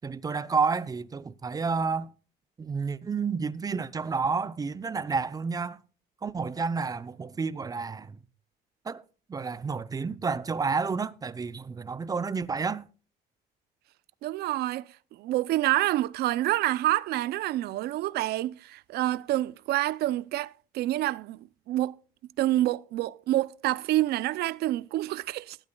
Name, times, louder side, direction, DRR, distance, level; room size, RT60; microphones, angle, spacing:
voice 1, 0.0-2.1 2.6-5.8 6.2-8.2 8.8-9.0 9.3-12.9, right 5 dB, 20° right, 0.6 m, -30 dB
voice 2, 14.2-22.0 22.4-25.6, right 15 dB, 70° right, 0.5 m, -28 dB
18.0 x 12.5 x 2.3 m
cardioid pair, 110°, 17 cm